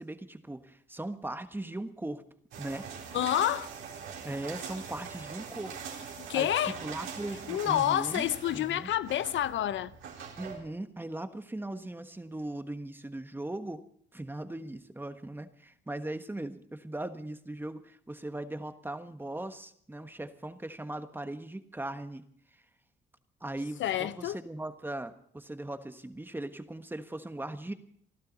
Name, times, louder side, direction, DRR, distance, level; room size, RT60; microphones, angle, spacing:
voice 1, 0.0-2.2 2.6-2.9 4.2-5.8 6.1-8.3 8.5-8.9 10.4-13.8 14.1-22.2 23.4-27.7, right 1 dB, 10° right, 1.4 m, -39 dB
sound 1, 2.5-10.6, right 6 dB, 80° right, 4.0 m, -43 dB
voice 2, 3.1-3.7 6.2-6.8 7.5-9.9 23.8-24.4, left 12 dB, 70° left, 0.6 m, -28 dB
29.0 x 12.0 x 4.1 m
cardioid pair, 90°, 20 cm